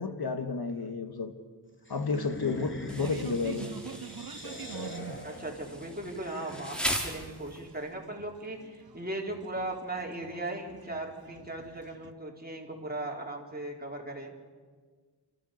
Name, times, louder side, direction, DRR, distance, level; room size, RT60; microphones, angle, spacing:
voice 1, 0.0-1.3 1.9-3.7, left 4 dB, 60° left, 7 dB, 2.1 m, -31 dB
sound 1, 1.8-7.3, left 1 dB, 25° left, 3.3 m, -44 dB
sound 2, 2.5-12.1, right 6 dB, 55° right, 1.1 m, -46 dB
Insect, 2.9-7.9, equal, ahead, 3.6 m, -38 dB
voice 2, 5.2-14.3, right 1 dB, 20° right, 0 dB, 4.2 m, -38 dB
29.5 x 14.0 x 6.8 m, 1.5 s
cardioid pair, 60°, 42 cm